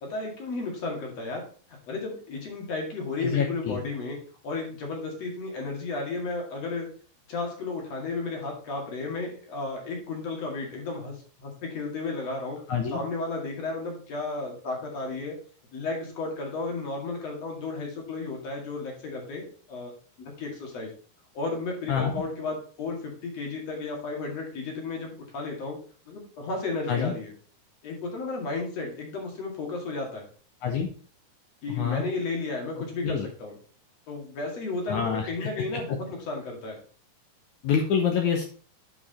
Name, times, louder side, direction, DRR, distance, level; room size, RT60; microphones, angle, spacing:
voice 1, 0.0-1.4 1.9-4.2 4.4-6.9 7.3-12.6 12.9-15.3 15.7-19.9 20.2-20.9 21.3-25.8 26.1-27.3 27.8-30.3 31.6-33.5 34.1-36.8, left 3 dB, 45° left, 0 dB, 2.8 m, -33 dB
voice 2, 3.2-3.8 12.7-13.0 21.9-22.1 26.9-27.1 30.6-30.9 31.7-32.0 33.0-33.3 34.9-35.3 37.6-38.4, left 7 dB, 80° left, 3 dB, 1.7 m, -26 dB
9.2 x 5.0 x 4.2 m, 0.41 s
omnidirectional pair, 4.6 m